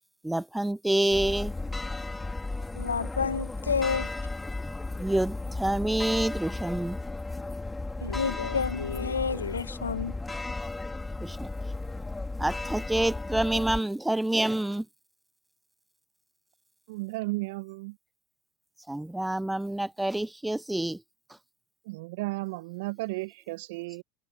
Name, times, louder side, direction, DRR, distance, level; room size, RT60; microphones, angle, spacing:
voice 1, 0.2-1.5 5.0-7.0 11.2-11.5 12.4-14.9 18.9-21.0, right 1 dB, 5° right, 0.4 m, -27 dB
sound 1, 1.1-13.8, left 2 dB, 15° left, 3.2 m, -35 dB
voice 2, 2.7-4.1 8.0-10.1, left 5 dB, 85° left, 1.5 m, -29 dB
voice 3, 16.9-18.0 21.9-24.0, right 23 dB, 65° right, 0.9 m, -34 dB
figure-of-eight pair, 75°, 0 cm